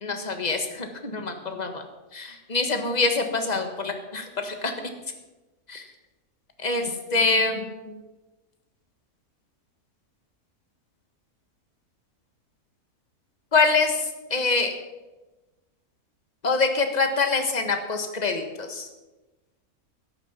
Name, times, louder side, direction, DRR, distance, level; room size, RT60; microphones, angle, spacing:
voice 1, 0.0-1.8 2.1-4.7 5.7-5.9 6.6-8.0 13.5-14.7 16.4-18.9, left 4 dB, 30° left, 5 dB, 1.4 m, -25 dB
13.5 x 10.5 x 5.9 m, 1.1 s
omnidirectional pair, 1.6 m